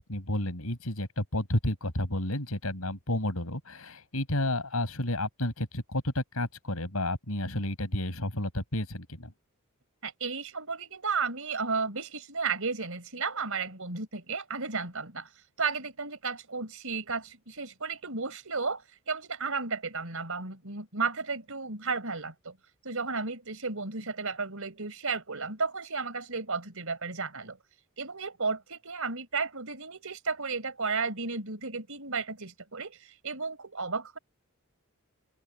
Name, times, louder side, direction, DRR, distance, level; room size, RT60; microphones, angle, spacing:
voice 1, 0.0-9.3, left 1 dB, 80° left, 5.7 m, -31 dB
voice 2, 10.0-15.3 15.6-22.6 22.8-27.6 28.0-34.2, right 4 dB, 65° right, 4.7 m, -33 dB
open air
head